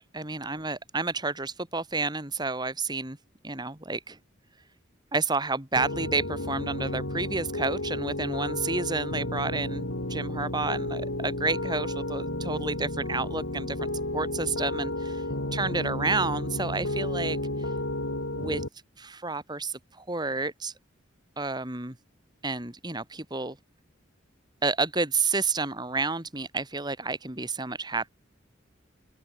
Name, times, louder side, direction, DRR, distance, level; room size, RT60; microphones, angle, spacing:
voice 1, 0.1-3.2 3.4-4.2 5.1-15.2 15.5-17.4 18.3-18.6 19.0-20.7 21.4-21.9 22.4-23.5 24.6-28.1, right 3 dB, 20° right, 2.7 m, -30 dB
Piano, 5.8-18.7, left 1 dB, 85° left, 6.1 m, -32 dB
open air
head